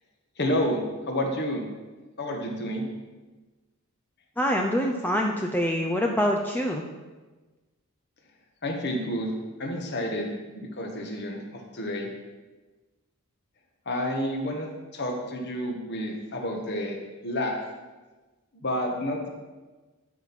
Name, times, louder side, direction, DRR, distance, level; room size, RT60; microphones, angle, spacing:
voice 1, 0.4-1.7 2.2-2.9 8.6-11.4 11.7-12.1 13.8-14.7 14.9-17.0 17.2-17.5 18.6-19.3, left 1 dB, 50° left, 2 dB, 1.4 m, -29 dB
voice 2, 4.4-6.8, equal, 10° left, 1 dB, 0.5 m, -25 dB
11.5 x 4.5 x 6.0 m, 1.2 s
head